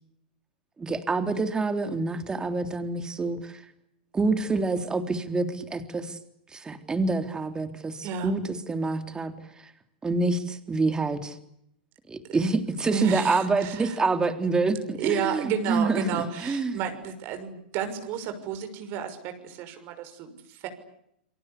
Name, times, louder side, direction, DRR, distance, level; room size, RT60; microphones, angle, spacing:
voice 1, 0.8-3.6 4.1-6.2 6.5-9.3 9.6-9.7 10.0-11.4 12.1-16.8, right 3 dB, 15° right, 8 dB, 3.5 m, -27 dB
voice 2, 8.0-8.3 12.3-12.4 12.8-14.0 15.0-20.7, right 7 dB, 45° right, 7 dB, 6.2 m, -32 dB
29.0 x 23.5 x 8.4 m, 0.76 s
hypercardioid pair, 115°, 5 cm